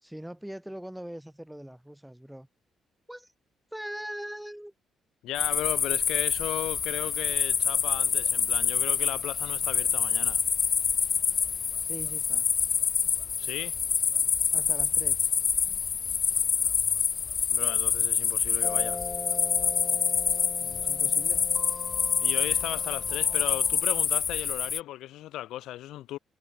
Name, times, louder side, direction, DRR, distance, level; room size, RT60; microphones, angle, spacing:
voice 1, 0.0-2.5 3.1-3.3 3.7-4.7 11.9-12.5 14.5-15.3 20.6-21.4, equal, 5° right, 3.3 m, -41 dB
voice 2, 5.2-10.4 13.4-13.7 17.5-19.0 22.2-26.2, left 14 dB, 85° left, 0.9 m, -36 dB
Night ambience with crickets, 5.3-24.8, left 6 dB, 45° left, 1.3 m, -26 dB
sound 1, 18.6-23.8, left 3 dB, 25° left, 1.3 m, -41 dB
cardioid pair, 90°, 0 cm